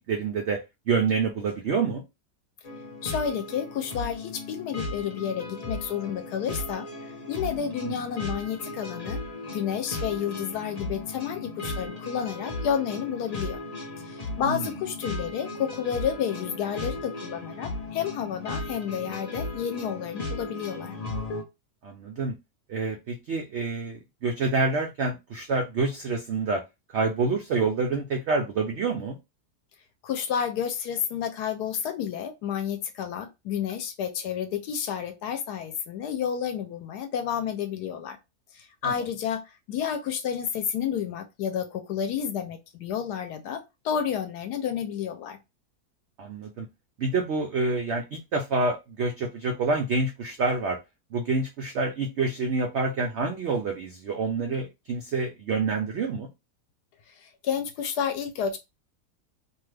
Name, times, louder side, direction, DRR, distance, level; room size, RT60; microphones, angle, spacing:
voice 1, 0.1-0.6 0.9-2.0 7.8-7.9 14.4-14.7 21.8-22.3 22.7-26.6 26.9-29.2 38.8-38.9 46.2-46.7 47.0-50.8 51.1-56.3, right 4 dB, 85° right, 2 dB, 0.6 m, -27 dB
sound 1, 2.6-21.4, left 2 dB, 35° left, 0.7 m, -36 dB
voice 2, 3.0-6.9 7.3-9.2 9.5-13.6 14.0-21.0 30.0-38.2 38.5-39.4 39.7-45.4 57.2-58.6, left 8 dB, 75° left, 7 dB, 1.1 m, -30 dB
2.8 x 2.3 x 3.2 m, 0.23 s
omnidirectional pair, 1.8 m